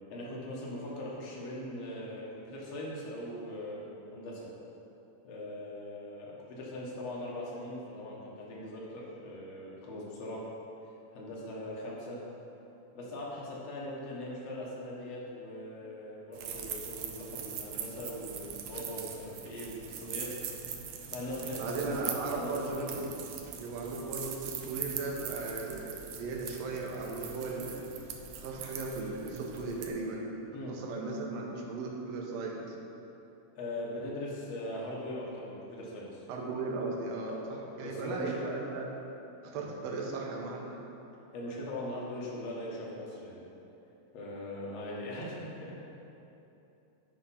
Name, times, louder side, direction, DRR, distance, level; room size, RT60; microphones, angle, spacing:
voice 1, 0.1-3.8 4.1-4.5 5.2-10.4 11.1-12.2 12.9-20.3 20.9-22.0 22.3-23.0 30.5-30.8 33.5-36.2 37.3-37.4 37.8-38.3 39.5-39.6 41.3-43.5 44.1-45.8, left 1 dB, 65° left, -4 dB, 2.3 m, -40 dB
sound 1, 16.3-29.9, right 7 dB, 85° right, 1.3 m, -42 dB
voice 2, 21.5-23.1 23.5-27.8 28.4-30.3 30.7-32.7 36.3-38.9 39.4-40.8, right 3 dB, 70° right, -1 dB, 1.8 m, -37 dB
10.0 x 3.8 x 5.6 m, 3.0 s
omnidirectional pair, 3.4 m